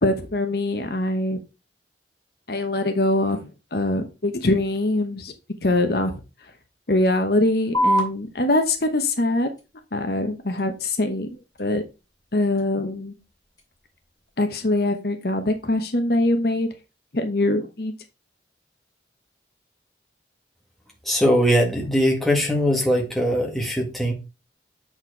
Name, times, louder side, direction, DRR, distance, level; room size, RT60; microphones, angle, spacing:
voice 1, 0.0-1.4 2.5-3.4 3.7-5.3 5.6-6.2 6.9-9.5 9.9-11.3 11.6-11.8 12.3-13.1 14.4-16.7 17.1-17.9, left 2 dB, 55° left, 1.0 m, -23 dB
sound 1, 7.7-14.7, equal, 20° left, 2.4 m, -32 dB
voice 2, 21.1-24.1, equal, ahead, 1.8 m, -21 dB
7.9 x 4.5 x 4.5 m
head